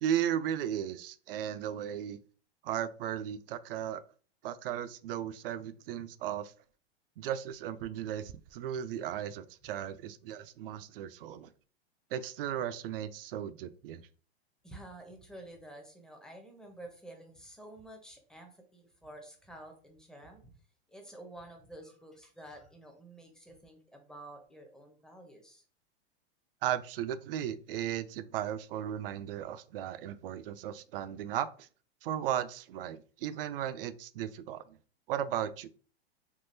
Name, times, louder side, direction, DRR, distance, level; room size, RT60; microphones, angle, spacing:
voice 1, 0.0-2.2 2.6-4.0 4.4-6.5 7.2-11.5 12.1-14.0 26.6-31.7 32.0-34.8 35.1-35.7, right 10 dB, 60° right, 13 dB, 0.5 m, -36 dB
voice 2, 14.6-20.6 20.9-25.6, right 1 dB, ahead, 3 dB, 0.6 m, -50 dB
3.6 x 2.3 x 2.7 m, 0.40 s
hypercardioid pair, 120°, 32 cm